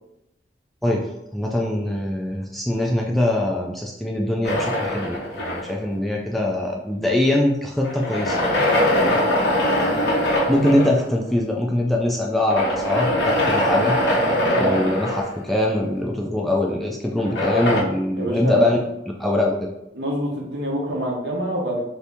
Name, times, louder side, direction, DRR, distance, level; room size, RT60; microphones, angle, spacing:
voice 1, 0.8-8.4 10.5-13.9 14.6-18.8 19.2-19.7, left 1 dB, ahead, -1 dB, 0.3 m, -22 dB
sound 1, 4.4-6.0 7.8-11.0 12.5-15.7 17.2-17.8, left 1 dB, 65° left, 0.9 m, -22 dB
voice 2, 13.4-13.9 14.3-14.9 18.2-18.7 19.9-21.9, right 1 dB, 70° right, -2 dB, 0.9 m, -26 dB
2.7 x 2.6 x 3.4 m, 0.85 s
head